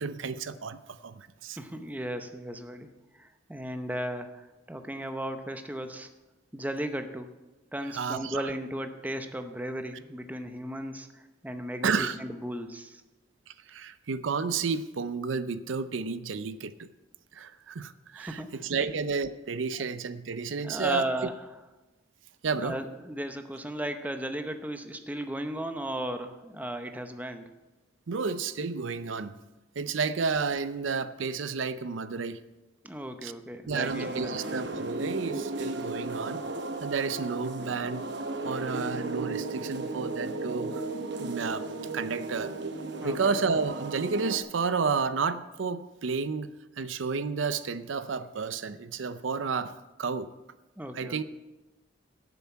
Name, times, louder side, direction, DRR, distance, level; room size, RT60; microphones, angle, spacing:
voice 1, 0.0-1.6 8.0-8.5 11.8-12.2 13.5-16.9 17.3-21.1 22.4-22.8 28.1-29.3 29.8-32.4 33.2-33.3 33.7-36.4 36.8-38.1 38.4-40.8 41.2-41.7 41.9-42.5 43.0-49.7 50.0-50.3 50.9-51.2, right 5 dB, 80° right, 13 dB, 0.6 m, -31 dB
voice 2, 1.6-6.1 6.5-7.3 7.7-13.0 18.2-18.9 20.6-21.3 22.5-27.5 32.8-34.4 43.0-43.2 50.8-51.2, right 1 dB, 10° right, 7 dB, 0.7 m, -36 dB
sound 1, 33.7-44.4, right 2 dB, 65° right, 0.9 m, -35 dB
11.5 x 7.0 x 8.3 m, 1.1 s
head